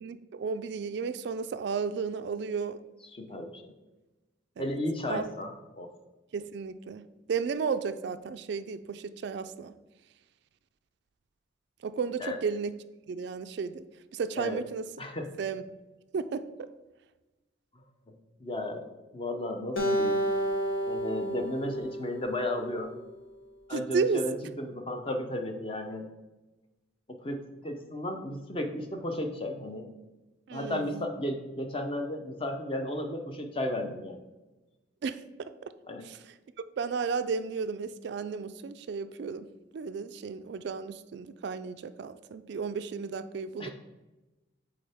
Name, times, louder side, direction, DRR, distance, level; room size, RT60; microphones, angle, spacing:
voice 1, 0.0-2.8 4.6-4.7 5.1-5.3 6.3-7.0 7.3-9.7 11.8-12.7 13.1-13.8 14.1-14.9 15.4-15.6 16.1-16.7 23.7-24.2 30.5-31.0 35.0-35.7 36.0-36.3 36.8-39.5 39.7-43.7, right 5 dB, 60° right, 12 dB, 0.3 m, -33 dB
voice 2, 3.1-3.7 4.6-5.9 12.2-12.4 14.4-14.6 15.0-15.3 17.7-17.8 18.4-18.9 19.1-20.2 20.9-22.9 23.7-26.1 27.1-29.9 30.5-34.2 35.9-36.0 43.6-43.7, left 1 dB, 30° left, 5 dB, 0.7 m, -34 dB
Acoustic guitar, 19.8-23.1, right 1 dB, 85° left, 1.2 m, -31 dB
8.6 x 3.7 x 3.4 m, 1.1 s
head